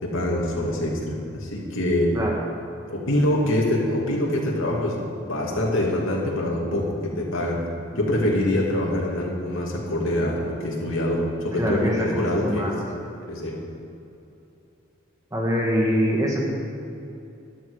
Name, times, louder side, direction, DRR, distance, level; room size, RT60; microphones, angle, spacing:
voice 1, 0.0-2.2 2.9-12.6 12.9-13.6, left 1 dB, 75° left, -2 dB, 2.7 m, -25 dB
voice 2, 11.6-12.8 15.3-16.4, equal, 15° right, -2 dB, 2.2 m, -24 dB
13.0 x 12.5 x 5.1 m, 2.7 s
head